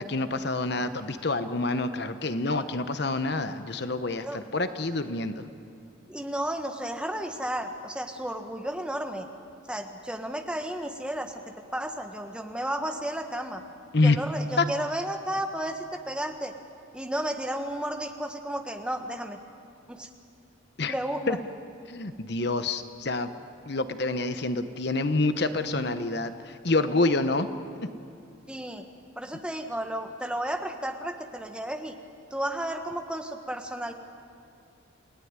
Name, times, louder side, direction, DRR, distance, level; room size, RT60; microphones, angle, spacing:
voice 1, 0.1-5.4 13.9-14.2 14.6-14.7 20.8-20.9 21.3-21.4 21.9-23.3 23.7-27.5, left 2 dB, 55° left, 10 dB, 1.0 m, -27 dB
voice 2, 6.1-9.3 9.7-11.4 11.7-13.6 14.0-16.5 16.9-19.4 19.9-20.1 20.9-21.4 28.5-28.9 29.2-31.9 32.3-33.9, right 1 dB, 5° right, 5 dB, 1.4 m, -33 dB
28.5 x 18.0 x 9.7 m, 2.6 s
head